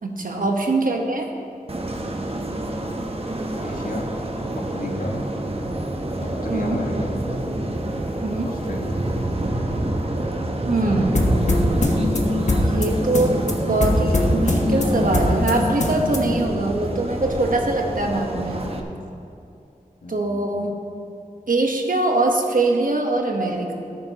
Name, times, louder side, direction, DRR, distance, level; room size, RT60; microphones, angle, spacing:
voice 1, 0.0-1.3 6.5-6.8 8.2-8.5 10.7-11.2 12.7-13.4 13.7-18.6 20.1-20.8 21.5-23.7, right 2 dB, 70° right, 2 dB, 1.2 m, -22 dB
sound 1, 1.7-18.8, right 1 dB, 40° right, 1.0 m, -27 dB
voice 2, 3.5-4.1 4.5-5.1 6.2-7.1 8.4-9.1 20.0-20.4, left 1 dB, 70° left, -1 dB, 1.7 m, -33 dB
sound 2, 11.1-16.5, left 1 dB, 55° left, 1.2 m, -22 dB
14.0 x 10.5 x 3.0 m, 2.6 s
wide cardioid pair, 75°, 15 cm